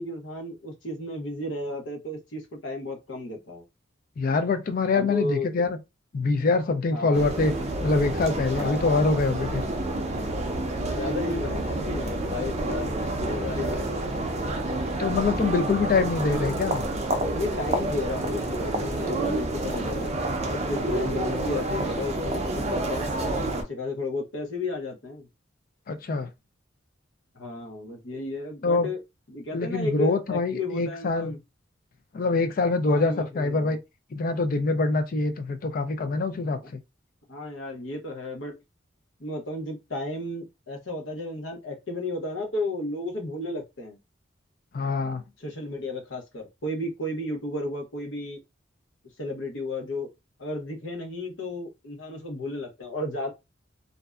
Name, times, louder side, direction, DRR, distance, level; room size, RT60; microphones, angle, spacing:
voice 1, 0.0-3.6 4.9-5.5 6.9-7.2 8.5-9.2 10.9-12.9 13.2-14.0 17.3-23.1 23.5-25.3 27.3-29.0 29.3-31.4 32.9-33.8 36.6-36.7 37.3-38.5 39.2-44.0 45.4-48.4 49.2-50.1 50.4-53.3, left 2 dB, 80° left, 0.8 m, -33 dB
voice 2, 4.2-5.8 6.1-7.5 7.8-9.6 15.0-16.8 25.9-26.3 28.6-28.9 29.5-31.3 32.1-33.8 34.1-36.6 44.7-45.2, left 3 dB, 45° left, 0.4 m, -24 dB
sound 1, 7.1-23.6, right 2 dB, 35° right, 0.5 m, -29 dB
2.5 x 2.1 x 2.3 m
head